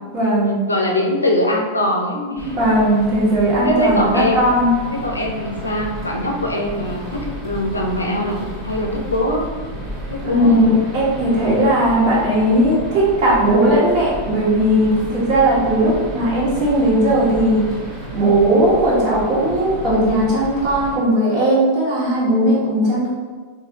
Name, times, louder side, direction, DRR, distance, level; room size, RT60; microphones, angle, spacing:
voice 1, 0.1-0.6 2.1-4.7 10.2-17.6 18.1-23.1, right 1 dB, 40° right, -7 dB, 1.4 m, -17 dB
voice 2, 0.7-2.7 3.6-4.5 4.9-9.5 10.1-10.7, left 1 dB, 80° left, 1 dB, 0.5 m, -22 dB
sound 1, 2.4-21.0, equal, 20° right, 1.4 m, -32 dB
3.9 x 2.5 x 2.9 m, 1.5 s
figure-of-eight pair, 90°, 0 cm